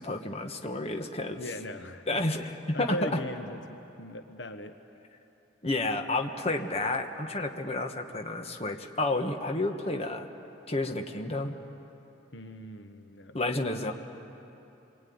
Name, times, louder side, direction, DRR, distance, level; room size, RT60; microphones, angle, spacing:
voice 1, 0.0-1.4 2.1-3.2 5.6-10.3 10.7-11.6 13.3-13.9, left 2 dB, 35° left, 4 dB, 1.4 m, -30 dB
voice 2, 1.4-2.2 2.7-4.7 12.3-13.4, left 1 dB, 65° left, 7 dB, 1.1 m, -39 dB
27.0 x 22.0 x 9.5 m, 3.0 s
head